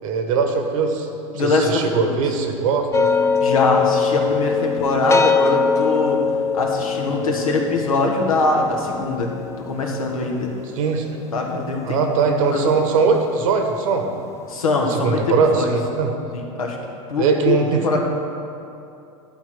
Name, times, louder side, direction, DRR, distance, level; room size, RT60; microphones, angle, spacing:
voice 1, 0.0-1.1 1.4-3.1 10.8-11.1 11.9-14.1 15.0-16.1 17.2-18.0, right 5 dB, 70° right, 4 dB, 1.4 m, -20 dB
voice 2, 1.3-2.2 3.4-6.2 6.5-9.3 9.6-10.5 11.3-13.1 14.5-15.7 16.3-16.8 17.1-17.6 17.8-18.0, left 3 dB, 90° left, 0 dB, 1.6 m, -22 dB
sound 1, 2.9-12.1, left 5 dB, 15° left, 0.5 m, -23 dB
11.5 x 4.6 x 7.6 m, 2.7 s
hypercardioid pair, 95°, 17 cm